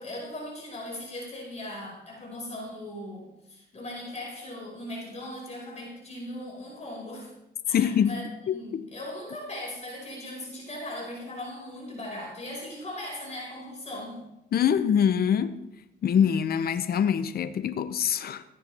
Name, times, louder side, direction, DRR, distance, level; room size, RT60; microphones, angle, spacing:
voice 1, 0.0-7.3 7.6-14.2, left 1 dB, 35° left, 5.0 m, -39 dB
voice 2, 7.7-8.2 8.5-8.9 14.5-15.6 16.0-18.4, left 8 dB, 50° left, 0.7 m, -24 dB
14.5 x 9.4 x 3.4 m
cardioid pair, 90°, 20 cm